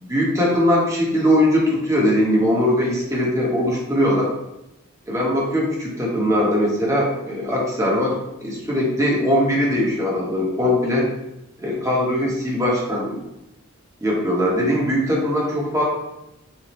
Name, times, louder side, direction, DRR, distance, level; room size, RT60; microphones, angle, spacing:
voice 1, 0.0-4.3 5.1-8.1 8.4-11.1 11.6-13.2 14.0-15.8, equal, 15° right, -4 dB, 0.8 m, -20 dB
4.2 x 2.0 x 3.0 m, 0.90 s
head